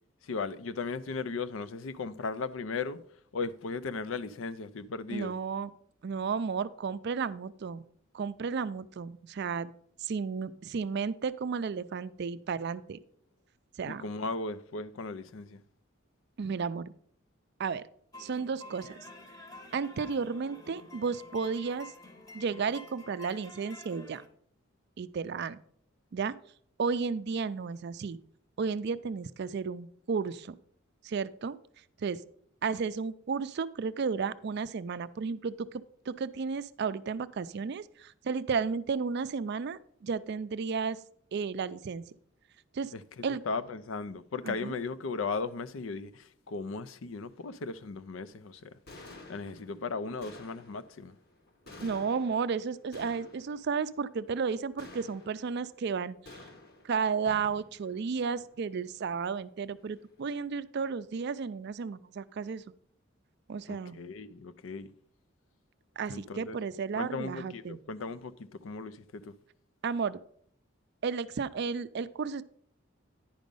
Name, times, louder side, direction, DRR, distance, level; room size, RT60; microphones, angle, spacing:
voice 1, 0.2-3.0 3.3-5.3 13.9-15.6 42.9-48.7 49.3-51.2 63.7-64.9 66.1-66.6 67.0-69.3, left 4 dB, 75° left, 0.5 m, -37 dB
voice 2, 5.1-5.7 6.0-7.9 8.1-9.7 10.0-13.0 13.8-14.1 16.4-16.9 17.6-17.8 18.2-19.1 19.7-21.9 22.3-24.2 25.0-25.6 26.1-26.4 26.8-28.2 28.6-30.6 31.0-31.6 32.0-32.2 32.6-41.0 41.3-42.0 42.7-42.9 43.2-43.4 44.5-44.7 51.8-56.4 56.8-62.6 63.5-64.0 66.0-67.8 69.8-70.2 71.0-72.4, right 5 dB, 55° right, 0.4 m, -33 dB
sound 1, 18.1-24.3, left 2 dB, 20° left, 0.9 m, -50 dB
sound 2, 47.2-47.6 48.6-48.7 48.9-60.2, left 2 dB, 50° left, 1.2 m, -53 dB
10.5 x 5.1 x 5.3 m
head